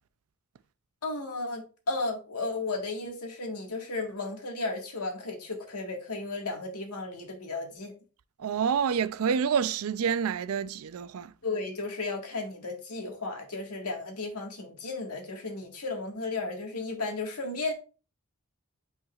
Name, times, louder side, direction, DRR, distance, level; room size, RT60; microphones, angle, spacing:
voice 1, 1.0-7.9 11.4-17.7, left 3 dB, 90° left, 1.7 m, -34 dB
voice 2, 8.4-11.3, right 7 dB, 75° right, 0.4 m, -28 dB
8.8 x 4.4 x 2.4 m
head